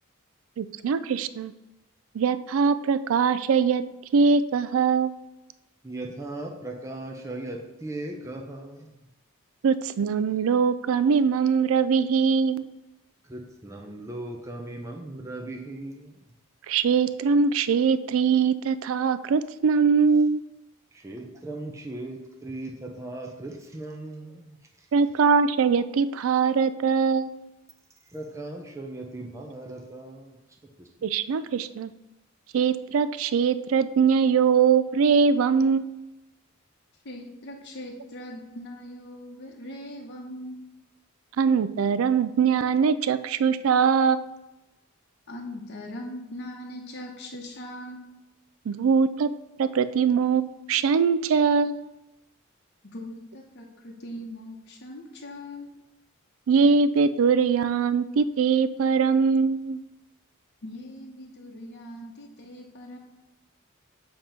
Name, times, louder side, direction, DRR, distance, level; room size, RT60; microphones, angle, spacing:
voice 1, 0.6-1.5 2.1-3.8 4.1-5.2 9.6-12.6 16.7-20.4 24.9-27.4 31.0-31.9 32.5-36.0 41.4-44.2 48.7-49.3 49.6-51.9 56.5-59.8, right 5 dB, 70° right, 14 dB, 0.3 m, -22 dB
voice 2, 5.8-8.9 13.3-16.1 20.9-24.6 28.1-30.4 30.8-30.9, right 2 dB, 15° right, 0 dB, 0.6 m, -38 dB
voice 3, 37.0-40.6 45.3-48.0 52.9-55.7 60.6-63.0, left 1 dB, 55° left, 0 dB, 0.9 m, -40 dB
7.3 x 3.0 x 5.0 m, 0.97 s
head